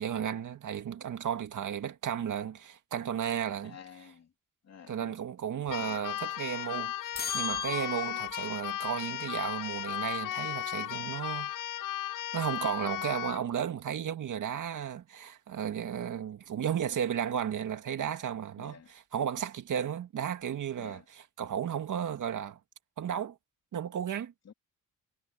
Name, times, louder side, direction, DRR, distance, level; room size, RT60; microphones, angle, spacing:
voice 1, 0.0-3.8 4.9-6.9 7.3-11.5 12.3-22.6 23.0-23.4 23.7-24.3, right 9 dB, 60° right, 2.1 m, -34 dB
voice 2, 3.6-4.3 4.6-5.2 5.8-6.0 18.6-18.9 20.8-21.0 24.4-24.5, left 7 dB, 45° left, 3.1 m, -51 dB
Keyboard (musical), 5.7-13.4, left 12 dB, 65° left, 0.8 m, -36 dB
sound 1, 7.1-8.5, left 6 dB, 25° left, 2.0 m, -36 dB
cardioid pair, 95°, 35 cm